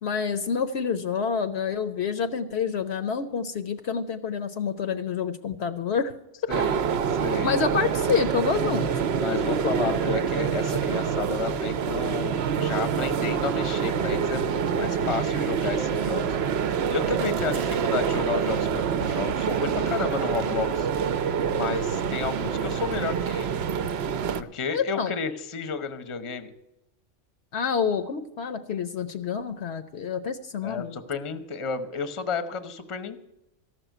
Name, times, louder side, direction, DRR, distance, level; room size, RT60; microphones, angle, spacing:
voice 1, 0.0-6.1 7.4-8.9 24.7-25.1 27.5-31.0, left 6 dB, 65° left, 10 dB, 0.9 m, -28 dB
sound 1, 6.5-24.4, right 7 dB, 65° right, 0.8 m, -26 dB
voice 2, 7.1-7.5 9.2-16.3 16.9-20.9 21.5-23.6 24.4-26.5 30.6-33.2, left 5 dB, 30° left, 10 dB, 0.8 m, -32 dB
14.0 x 6.1 x 9.0 m, 0.92 s
omnidirectional pair, 1.3 m